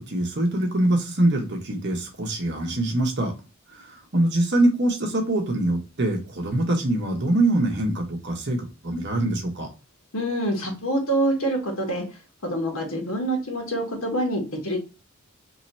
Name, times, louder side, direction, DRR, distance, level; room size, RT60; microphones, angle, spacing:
voice 1, 0.0-3.3 3.7-9.7, right 1 dB, 55° right, 1.0 m, -24 dB
voice 2, 10.1-12.0 12.4-14.8, right 1 dB, 80° left, 1.5 m, -26 dB
3.1 x 2.9 x 4.1 m
head